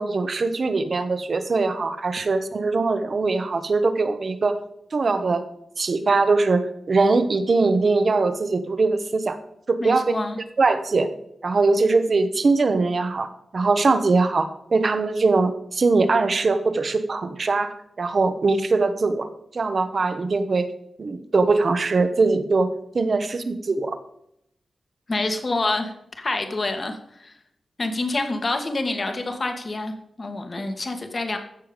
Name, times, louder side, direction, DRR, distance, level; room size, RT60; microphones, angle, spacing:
voice 1, 0.0-4.6 4.9-5.4 5.8-9.4 9.7-10.1 10.6-11.1 11.4-19.3 19.5-20.7 21.0-24.0, right 3 dB, 45° right, 9 dB, 1.2 m, -21 dB
voice 2, 9.8-10.4 25.1-27.4 27.8-31.4, left 2 dB, 30° left, 6 dB, 1.8 m, -27 dB
15.5 x 7.0 x 5.2 m, 0.76 s
wide cardioid pair, 160°, 0 cm